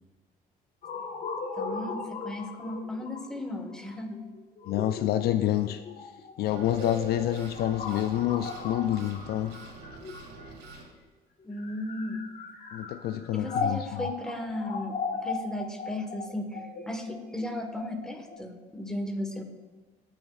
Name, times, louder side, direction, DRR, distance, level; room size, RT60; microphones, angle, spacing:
sound 1, 0.8-10.7 11.4-18.4, left 4 dB, 50° left, 1.2 m, -37 dB
voice 1, 1.6-4.2 11.4-12.2 13.3-19.4, left 1 dB, 5° left, 4 dB, 1.2 m, -35 dB
voice 2, 4.7-5.8 6.4-9.6 12.7-14.1, left 12 dB, 70° left, 10 dB, 0.4 m, -28 dB
sound 2, 6.5-10.8, right 3 dB, 80° right, 2.1 m, -46 dB
18.5 x 6.3 x 2.3 m, 1.3 s
cardioid pair, 110°, 17 cm